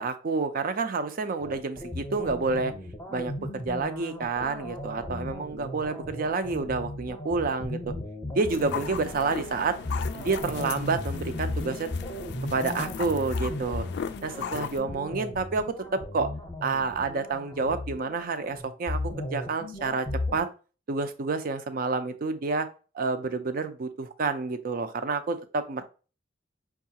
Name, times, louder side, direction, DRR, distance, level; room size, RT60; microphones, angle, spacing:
voice 1, 0.0-2.7 3.1-7.8 8.3-9.8 10.1-11.9 12.5-13.9 14.2-15.7 15.9-16.3 16.6-20.1 20.3-20.5 20.9-22.7 22.9-25.8, right 4 dB, 50° right, 10 dB, 0.5 m, -29 dB
sound 1, 1.4-20.4, left 1 dB, 20° left, 0.8 m, -36 dB
sound 2, 8.5-14.8, left 7 dB, 60° left, 0.3 m, -37 dB
5.3 x 2.4 x 2.8 m, 0.35 s
head